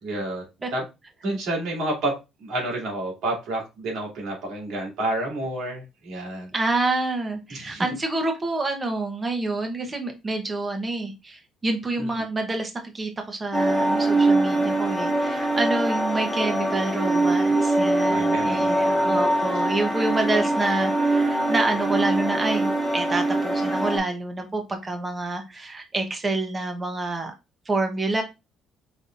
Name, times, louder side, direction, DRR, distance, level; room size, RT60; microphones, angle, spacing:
voice 1, 0.0-0.4 0.7-0.8 1.2-2.1 2.4-6.5 7.5-7.9 12.0-12.2 18.1-19.3, right 1 dB, 70° right, -1 dB, 2.6 m, -30 dB
voice 2, 6.5-27.3 27.7-28.2, right 2 dB, 20° right, 5 dB, 0.9 m, -27 dB
sound 1, 13.5-24.0, right 2 dB, 5° right, 1.4 m, -23 dB
5.1 x 3.5 x 2.6 m, 0.25 s
cardioid pair, 155°, 0 cm